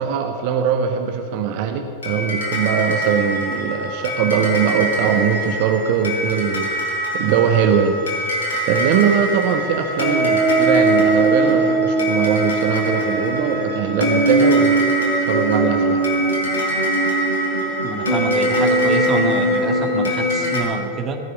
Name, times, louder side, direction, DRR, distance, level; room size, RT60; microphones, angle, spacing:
voice 1, 0.0-8.0 8.7-14.9 15.3-16.0, right 7 dB, 45° right, 5 dB, 1.1 m, -21 dB
sound 1, 2.0-20.6, right 1 dB, 65° left, 3.6 m, -21 dB
voice 2, 17.8-21.2, right 4 dB, 30° right, 4 dB, 1.8 m, -26 dB
18.5 x 6.6 x 9.5 m, 2.4 s
figure-of-eight pair, 90°, 0 cm